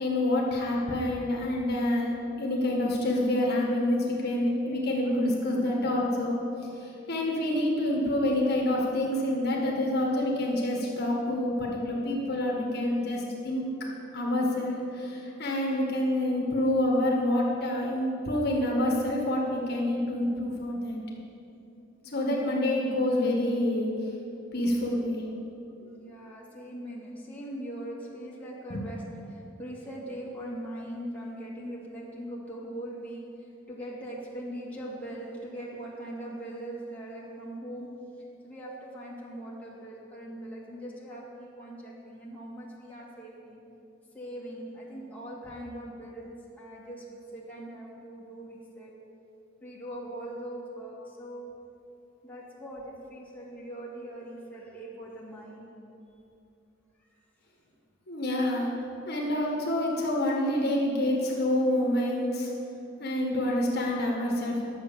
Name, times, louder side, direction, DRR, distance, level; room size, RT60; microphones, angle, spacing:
voice 1, 0.0-6.4 6.8-13.7 14.1-21.0 22.1-24.0 24.5-25.3 28.7-28.8 58.1-58.7 59.1-62.5 63.0-64.6, left 1 dB, 55° left, -1 dB, 1.6 m, -27 dB
voice 2, 22.0-22.4 25.8-29.0 29.3-33.2 33.7-37.9 38.4-43.6 44.1-48.9 49.6-51.4 52.2-55.7, right 1 dB, 10° left, -6 dB, 2.0 m, -41 dB
10.5 x 7.1 x 6.8 m, 2.8 s
head